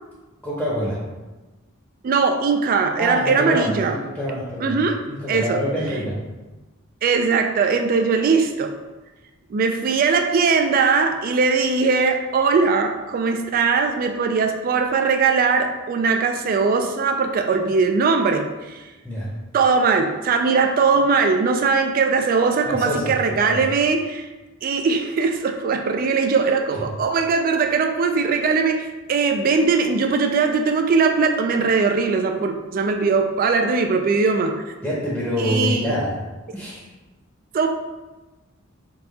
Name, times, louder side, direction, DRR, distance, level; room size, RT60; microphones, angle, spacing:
voice 1, 0.4-1.0 3.0-4.8 5.0-6.2 19.0-19.3 22.7-23.6 26.8-26.9 34.8-36.2 36.5-36.8, equal, ahead, -6 dB, 0.8 m, -26 dB
voice 2, 2.0-4.0 4.6-5.0 5.3-5.6 7.0-8.7 9.5-18.8 19.5-24.3 24.6-34.7 35.4-36.0 37.5-37.7, right 4 dB, 45° right, 5 dB, 0.3 m, -20 dB
3.7 x 2.8 x 4.0 m, 1.2 s
head